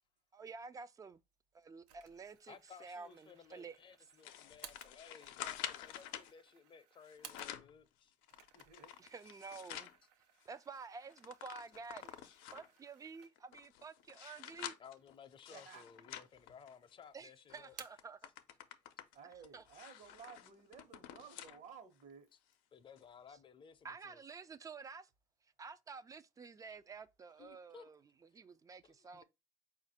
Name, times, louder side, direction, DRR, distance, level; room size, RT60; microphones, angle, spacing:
voice 1, 0.3-1.2 1.5-3.8 9.0-9.9 10.5-14.7 17.1-18.3 19.5-19.6 23.3-23.4 23.8-25.1 25.6-29.2, right 5 dB, 25° right, 0.3 m, -51 dB
sound 1, 1.9-7.9 8.2-13.7 14.1-14.2 15.0-15.7 16.0-16.8 17.1-18.2, right 9 dB, 90° right, 0.6 m, -60 dB
voice 2, 2.5-8.1 14.8-17.7 22.7-24.2 27.4-27.9 28.8-29.2, left 6 dB, 35° left, 0.5 m, -58 dB
sound 2, 4.2-6.3 7.0-7.8 8.2-10.0 10.4-10.5 10.8-12.8 13.4-17.1 17.5-17.7 18.0-21.6 22.0-22.1 23.0-23.1, left 11 dB, 85° left, 0.5 m, -49 dB
voice 3, 8.5-9.0 15.5-15.9 19.1-22.3, right 6 dB, 55° right, 1.2 m, -55 dB
4.3 x 2.5 x 4.0 m
supercardioid pair, 100°, 14 cm